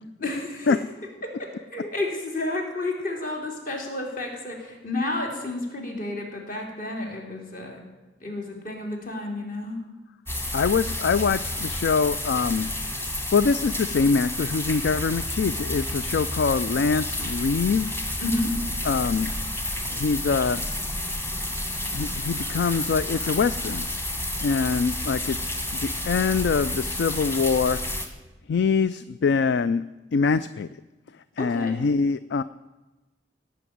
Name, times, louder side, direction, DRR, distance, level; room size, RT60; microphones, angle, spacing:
voice 1, 0.2-0.8 1.2-7.8 8.2-9.8 18.2-18.5 31.4-31.8, left 2 dB, 50° left, 1 dB, 3.3 m, -31 dB
sound 1, 10.3-28.1, left 1 dB, 15° left, 1.6 m, -30 dB
voice 2, 10.5-12.7 13.3-17.9 18.8-19.3 19.9-20.6 21.9-23.9 24.4-27.8 28.5-29.8 30.1-30.7 31.4-32.4, left 5 dB, 65° left, 15 dB, 0.4 m, -24 dB
17.5 x 6.0 x 9.3 m, 1.1 s
head